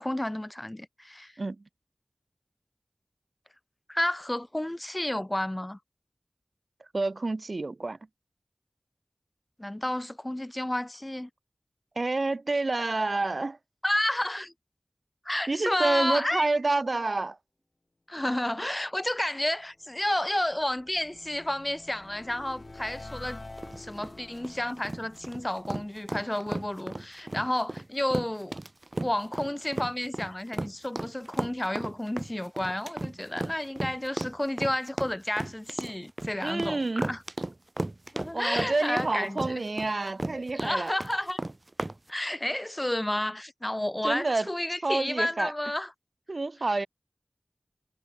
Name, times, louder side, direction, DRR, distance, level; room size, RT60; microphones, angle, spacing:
voice 1, 0.0-1.3 3.9-5.8 9.6-11.3 13.8-14.5 15.3-16.5 18.1-23.4 23.8-28.6 29.0-37.2 38.1-39.6 40.5-41.4 42.1-45.9, left 1 dB, 25° left, 0.7 m, -31 dB
voice 2, 6.9-8.0 12.0-13.6 15.5-17.4 36.4-37.1 38.3-40.9 44.0-44.5 44.8-45.5 46.3-46.9, right 3 dB, 80° right, 3.4 m, -28 dB
sound 1, 19.7-26.9, left 2 dB, 60° left, 2.7 m, -48 dB
sound 2, 23.6-42.0, right 2 dB, 45° right, 1.6 m, -34 dB
wide cardioid pair, 50°, 0 cm